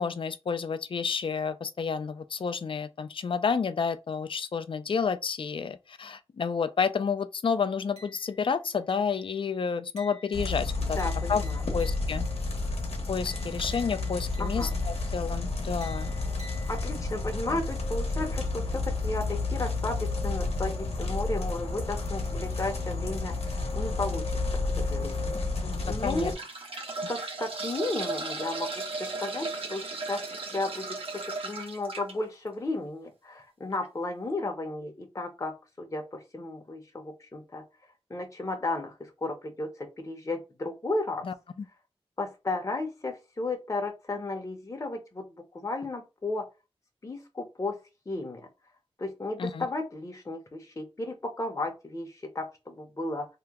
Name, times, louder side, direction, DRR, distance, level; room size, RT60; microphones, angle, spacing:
voice 1, 0.0-11.0 11.3-11.4 11.7-12.2 13.1-16.1 17.5-17.6 25.6-26.3 41.2-41.3 49.4-49.7, left 6 dB, 55° left, 0.4 m, -30 dB
sound 1, 8.0-8.5 8.9-9.3 10.0-12.4 13.3-15.2 15.8-17.2, left 1 dB, 90° right, 1.3 m, -51 dB
sound 2, 10.3-26.3, left 3 dB, 80° left, 0.9 m, -31 dB
voice 2, 10.9-11.6 14.4-14.7 16.7-24.4 24.8-25.4 25.8-26.3 27.1-35.5 35.8-37.6 38.1-41.2 42.2-46.4 47.0-47.8 48.1-48.5 49.0-53.3, left 2 dB, 30° left, 0.7 m, -34 dB
sound 3, 23.8-24.0 24.7-24.8 25.7-32.1 33.7-33.8 34.1-34.2, right 3 dB, 65° right, 0.9 m, -36 dB
2.9 x 2.1 x 3.5 m
wide cardioid pair, 70°, 10 cm